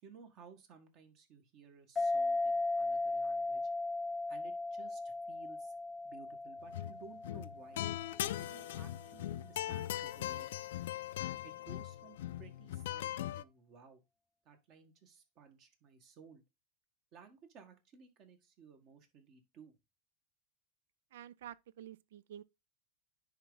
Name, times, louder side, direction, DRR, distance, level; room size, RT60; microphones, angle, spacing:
voice 1, 0.0-3.7 4.3-5.7 6.0-7.8 8.4-10.6 11.4-14.0 14.4-16.4 17.1-19.7, right 6 dB, 40° right, 1.6 m, -57 dB
sound 1, 2.0-9.0, left 2 dB, 15° left, 0.4 m, -37 dB
sound 2, 6.6-7.0 7.2-13.4, left 13 dB, 80° left, 0.4 m, -40 dB
voice 2, 21.1-22.4, right 11 dB, 80° right, 0.5 m, -50 dB
10.0 x 3.6 x 3.9 m
supercardioid pair, 140°, 0 cm